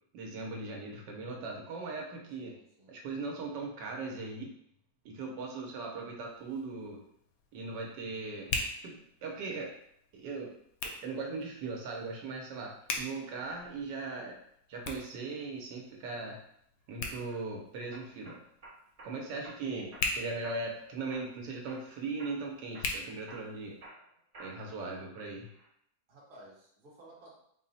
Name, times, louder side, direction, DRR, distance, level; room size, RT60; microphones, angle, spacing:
voice 1, 0.1-2.5 2.9-4.5 5.0-7.0 7.5-8.5 8.8-9.7 10.1-10.5 11.0-14.3 14.7-16.4 16.9-18.4 19.0-23.8 24.4-25.5, right 3 dB, 80° right, 0 dB, 1.3 m, -39 dB
voice 2, 2.4-2.9 13.9-14.1 19.9-20.0 26.1-27.3, right 1 dB, 35° right, -5 dB, 1.1 m, -55 dB
Hands, 6.2-23.9, left 3 dB, 65° left, 0.9 m, -43 dB
sound 1, 17.0-17.4 17.9-19.1 19.4-20.1 20.4-20.8 21.1-21.9 22.2-22.4 22.7-24.8 25.2-25.7, right 2 dB, 50° right, 0.4 m, -51 dB
4.1 x 2.0 x 4.0 m, 0.71 s
omnidirectional pair, 1.9 m